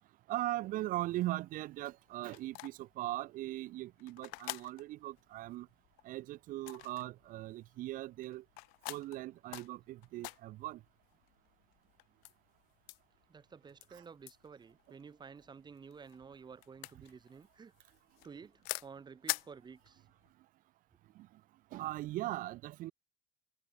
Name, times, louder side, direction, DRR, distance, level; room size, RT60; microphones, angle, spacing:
voice 1, 0.3-5.7 6.0-8.4 8.9-10.8 21.2-21.3 21.7-22.9, right 16 dB, 60° right, 0.6 m, -39 dB
sound 1, 1.0-20.3, left 33 dB, 85° left, 1.0 m, -47 dB
voice 2, 13.3-17.7 18.2-20.0, right 6 dB, 30° right, 1.7 m, -52 dB
supercardioid pair, 95°, 15 cm